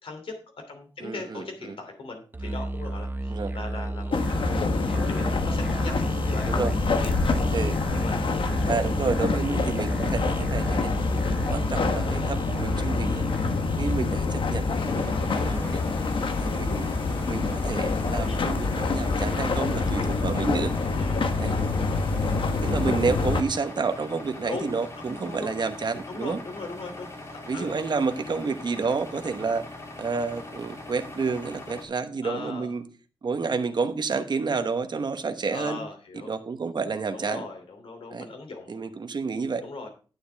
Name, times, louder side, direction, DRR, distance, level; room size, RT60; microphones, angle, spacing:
voice 1, 0.0-7.1 7.9-8.8 18.3-18.5 21.0-21.4 21.7-22.5 24.4-24.8 25.1-25.5 26.1-27.7 32.2-32.7 35.5-36.3 37.1-38.8 39.6-39.9, left 3 dB, 90° left, 4 dB, 2.9 m, -39 dB
voice 2, 1.0-1.7 3.3-3.6 6.4-6.7 7.5-7.9 8.7-10.9 11.5-13.3 13.8-15.8 16.4-16.9 17.2-20.8 21.4-21.5 22.6-26.4 27.5-32.8 33.2-35.8 36.1-37.5 38.1-38.3 38.7-39.6, right 4 dB, 55° right, 8 dB, 1.1 m, -30 dB
Musical instrument, 2.3-14.1, right 2 dB, 20° right, 0.7 m, -32 dB
sound 1, 4.1-23.4, left 4 dB, 70° left, 1.2 m, -26 dB
sound 2, 14.7-31.9, left 2 dB, 35° left, 3.2 m, -41 dB
11.0 x 9.8 x 3.5 m, 0.37 s
wide cardioid pair, 125°, 9 cm